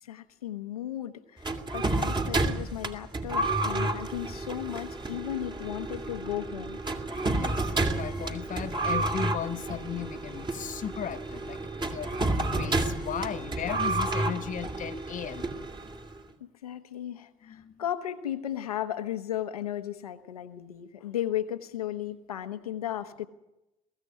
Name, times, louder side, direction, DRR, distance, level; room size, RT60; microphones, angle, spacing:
voice 1, 0.0-6.8 16.4-23.3, left 11 dB, 90° left, 9 dB, 1.1 m, -35 dB
sound 1, 1.4-16.1, right 2 dB, 25° right, 2.6 m, -30 dB
voice 2, 7.3-15.5 17.4-17.8, left 9 dB, 45° left, 10 dB, 1.1 m, -36 dB
22.5 x 15.5 x 9.6 m, 0.95 s
hypercardioid pair, 55°, 18 cm